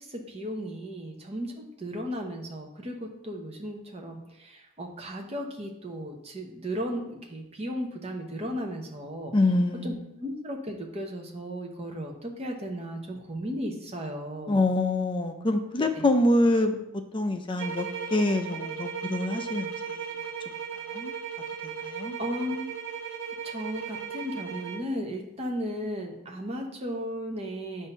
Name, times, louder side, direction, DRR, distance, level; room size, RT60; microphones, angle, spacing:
voice 1, 0.0-9.3 9.8-9.9 10.2-14.6 16.0-16.1 21.9-22.7 23.4-27.9, equal, 30° right, 2 dB, 0.9 m, -35 dB
voice 2, 9.3-10.0 14.5-16.8 17.1-20.0 20.9-21.1 21.8-22.2, left 2 dB, 25° left, 6 dB, 0.5 m, -25 dB
sound 1, 17.6-24.9, right 7 dB, 55° right, 0.6 m, -36 dB
7.8 x 2.7 x 5.4 m, 0.86 s
head